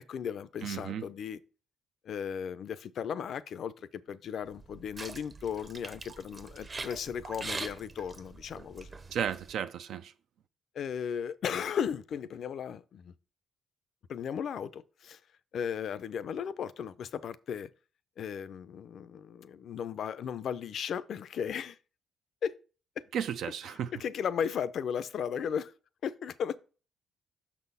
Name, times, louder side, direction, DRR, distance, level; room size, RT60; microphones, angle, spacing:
voice 1, 0.0-1.4 2.0-8.9 10.7-13.1 14.1-15.2 15.5-17.7 18.2-21.8 22.4-22.5 23.0-23.1 23.4-25.7 26.0-26.6, left 8 dB, 65° left, 0.4 m, -36 dB
voice 2, 0.6-1.0 9.1-10.1 23.1-23.9, right 8 dB, 75° right, 0.4 m, -34 dB
sound 1, 4.5-9.5, right 3 dB, 30° right, 0.7 m, -43 dB
6.1 x 4.1 x 5.4 m
cardioid pair, 90°, 0 cm